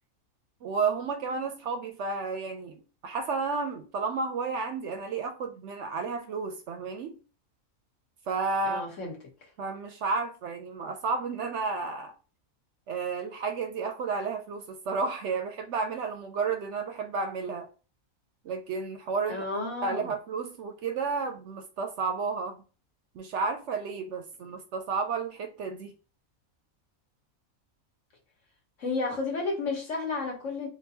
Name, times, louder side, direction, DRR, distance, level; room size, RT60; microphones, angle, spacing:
voice 1, 0.6-7.2 8.3-8.8 9.6-12.1 12.9-17.7 18.4-19.4 19.8-22.6 23.1-25.9, right 4 dB, 65° right, 0.8 m, -32 dB
voice 2, 8.6-9.1 19.3-20.1 28.8-30.7, left 3 dB, 65° left, 1.4 m, -32 dB
3.8 x 2.5 x 2.7 m
omnidirectional pair, 1.4 m